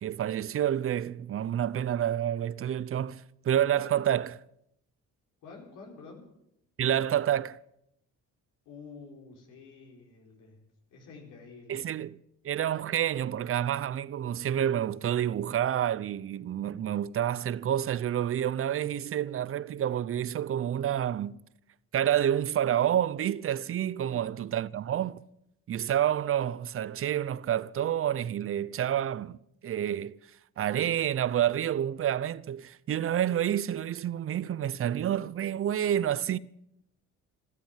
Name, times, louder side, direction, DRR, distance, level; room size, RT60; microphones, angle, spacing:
voice 1, 0.0-4.4 6.8-7.6 11.7-12.2 12.4-21.4 21.9-25.2 25.7-29.4 29.6-30.2 30.6-36.4, right 10 dB, 45° right, 0.6 m, -29 dB
voice 2, 5.4-6.3 8.6-10.6 10.9-11.8 24.0-24.2, left 4 dB, 90° left, 4.5 m, -49 dB
14.5 x 13.0 x 7.4 m
cardioid pair, 90°, 30 cm